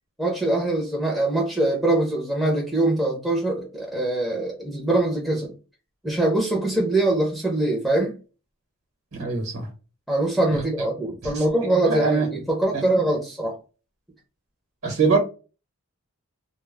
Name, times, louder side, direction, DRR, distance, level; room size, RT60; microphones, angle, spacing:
voice 1, 0.2-5.5 6.0-8.1 10.1-13.6, right 2 dB, ahead, 0.5 m, -23 dB
voice 2, 9.1-9.7 10.5-10.6 11.2-11.4 11.9-12.3 12.7-12.8 14.8-15.2, right 4 dB, 60° right, 0.9 m, -23 dB
2.1 x 2.0 x 3.2 m
head